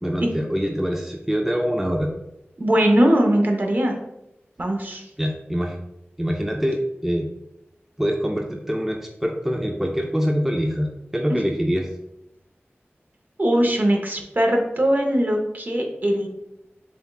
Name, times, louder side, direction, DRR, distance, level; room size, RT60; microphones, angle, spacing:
voice 1, 0.0-2.1 5.2-5.8 6.2-7.3 8.0-11.9, equal, 5° right, 1 dB, 0.4 m, -24 dB
voice 2, 2.6-4.0 4.6-5.0 13.4-16.3, equal, 45° right, 2 dB, 0.7 m, -20 dB
6.8 x 2.3 x 2.3 m, 0.86 s
wide cardioid pair, 70°, 4 cm